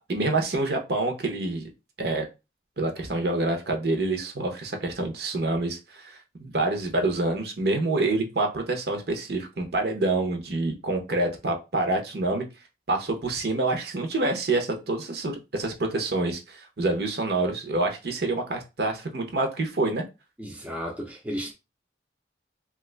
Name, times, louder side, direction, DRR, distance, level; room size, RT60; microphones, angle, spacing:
voice 1, 0.1-1.6 2.0-2.3 2.8-12.4 12.9-20.0, right 2 dB, 60° right, 0.7 m, -27 dB
voice 2, 20.4-21.5, equal, 5° right, 0.5 m, -34 dB
2.9 x 2.4 x 3.2 m
head